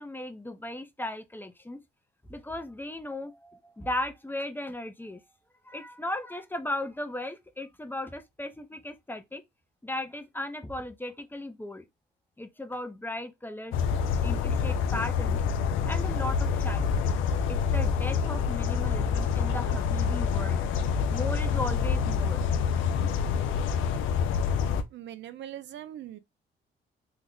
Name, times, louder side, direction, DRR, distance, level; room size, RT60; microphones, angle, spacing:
voice 1, 0.0-1.8 2.3-5.2 5.6-9.4 9.8-11.8 12.4-13.7 14.2-15.4 15.9-17.0 17.5-20.6 21.1-22.4, left 1 dB, 10° left, 0.5 m, -36 dB
sound 1, 13.7-24.8, left 6 dB, 90° left, 0.5 m, -27 dB
voice 2, 24.9-26.2, right 11 dB, 65° right, 0.4 m, -41 dB
3.3 x 2.0 x 3.6 m
cardioid pair, 90°, 20 cm